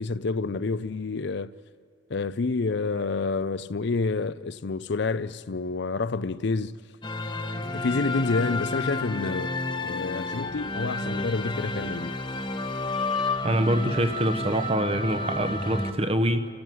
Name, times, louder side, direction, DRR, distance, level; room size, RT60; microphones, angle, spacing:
voice 1, 0.0-1.5 2.1-6.8 7.7-9.5 9.8-12.2, left 3 dB, 60° left, 0.5 m, -28 dB
sound 1, 7.0-15.9, left 2 dB, 25° left, 1.1 m, -31 dB
voice 2, 13.4-16.5, equal, 30° right, 1.0 m, -25 dB
29.5 x 15.5 x 9.3 m
head